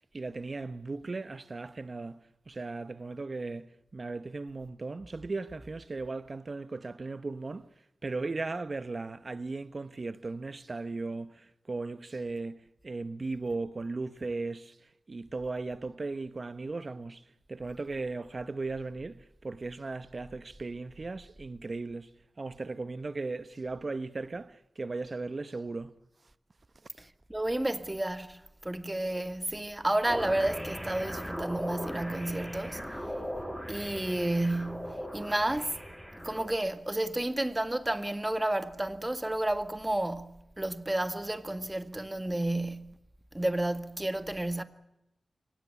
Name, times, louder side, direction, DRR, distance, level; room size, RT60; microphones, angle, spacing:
voice 1, 0.1-2.2 2.5-7.7 8.0-14.7 15.1-22.1 22.4-25.9, right 3 dB, 45° right, 1.1 m, -37 dB
voice 2, 27.0-32.9 33.7-35.8 36.2-43.0 43.3-44.6, right 1 dB, 15° right, 1.8 m, -31 dB
sound 1, 30.1-36.6, equal, ahead, 2.9 m, -39 dB
23.5 x 18.5 x 9.7 m
cardioid pair, 60°, 0 cm